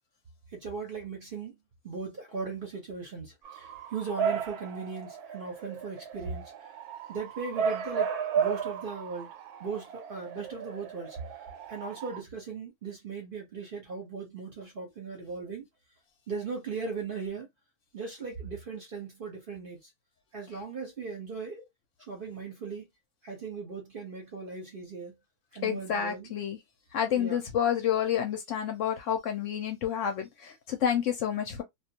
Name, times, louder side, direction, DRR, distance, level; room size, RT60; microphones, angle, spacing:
voice 1, 0.5-1.6 1.8-6.5 7.1-8.1 8.4-9.3 9.6-11.2 11.7-15.7 16.3-17.5 17.9-19.8 20.3-21.6 22.1-22.9 23.2-25.1 25.5-26.3 27.1-27.4, right 5 dB, 50° right, 0.7 m, -38 dB
Bark / Motor vehicle (road) / Siren, 3.5-12.2, right 7 dB, 90° right, 1.1 m, -34 dB
voice 2, 25.6-26.6 26.9-31.6, left 9 dB, 65° left, 0.8 m, -29 dB
2.4 x 2.3 x 2.7 m
omnidirectional pair, 1.6 m